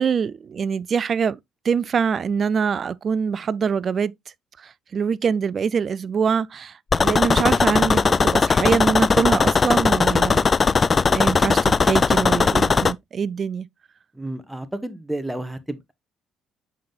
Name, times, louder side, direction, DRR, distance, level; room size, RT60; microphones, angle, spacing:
voice 1, 0.0-1.4 1.6-4.1 4.6-10.5 10.9-13.7, right 6 dB, 50° right, 0.4 m, -24 dB
sound 1, 6.9-12.9, left 4 dB, 35° left, 0.4 m, -18 dB
voice 2, 14.1-15.9, right 1 dB, 5° right, 1.1 m, -31 dB
7.5 x 5.5 x 2.4 m
hypercardioid pair, 50°, 0 cm